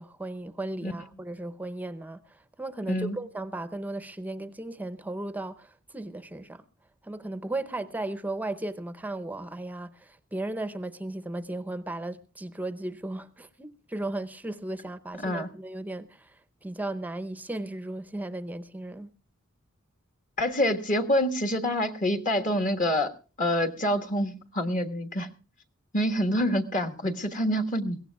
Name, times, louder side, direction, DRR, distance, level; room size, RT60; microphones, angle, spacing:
voice 1, 0.0-6.6 7.0-16.3 16.6-19.1, right 2 dB, 10° right, 0.7 m, -36 dB
voice 2, 20.4-23.1 23.4-25.3 25.9-28.0, equal, 40° left, 1.4 m, -26 dB
22.0 x 17.0 x 2.3 m
head